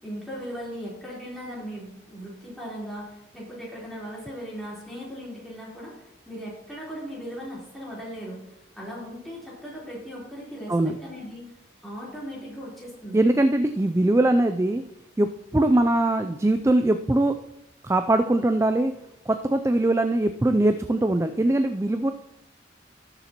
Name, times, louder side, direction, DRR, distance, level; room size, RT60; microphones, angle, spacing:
voice 1, 0.0-10.7 11.0-11.4 11.8-13.2, equal, ahead, -7 dB, 3.8 m, -38 dB
voice 2, 13.1-14.8 15.2-17.3 17.8-18.9 19.3-22.1, right 1 dB, 15° right, 8 dB, 0.3 m, -21 dB
18.5 x 6.8 x 2.9 m, 0.87 s
head